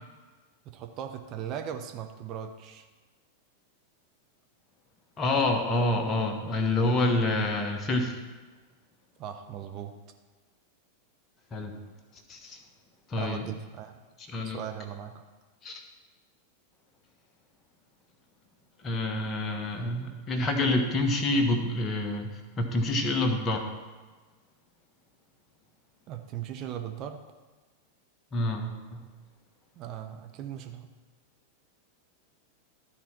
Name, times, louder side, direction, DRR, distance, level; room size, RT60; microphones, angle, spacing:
voice 1, 0.7-2.9 9.2-9.9 13.1-14.0 14.4-15.2 26.1-27.2 29.8-30.9, right 9 dB, 35° right, 5 dB, 0.6 m, -38 dB
voice 2, 5.2-8.2 11.5-11.7 12.3-12.6 13.1-13.5 14.2-14.6 15.6-15.8 18.8-22.3 22.6-23.6 28.3-29.1, left 2 dB, 25° left, 4 dB, 1.2 m, -27 dB
12.5 x 4.2 x 5.9 m, 1.3 s
figure-of-eight pair, 90°, 0 cm